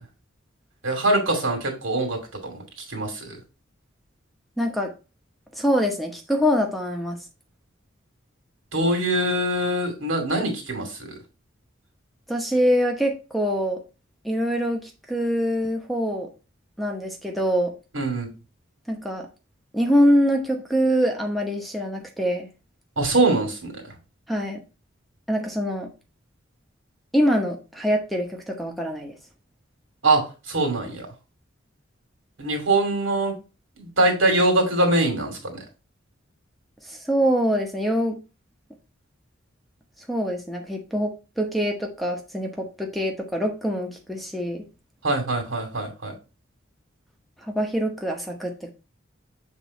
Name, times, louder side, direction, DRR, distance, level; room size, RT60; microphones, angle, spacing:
voice 1, 0.8-3.4 8.7-11.2 17.9-18.3 23.0-23.8 30.0-31.1 32.4-33.4 33.8-35.6 45.0-46.1, right 2 dB, 80° right, 2 dB, 2.6 m, -23 dB
voice 2, 4.6-4.9 5.6-7.2 12.3-13.8 14.2-16.3 16.8-17.7 18.9-19.3 19.7-22.5 24.3-24.6 25.3-25.9 27.1-29.2 36.8-38.2 40.1-44.6 47.4-48.7, equal, ahead, 2 dB, 0.9 m, -24 dB
7.6 x 3.6 x 4.1 m, 0.30 s
head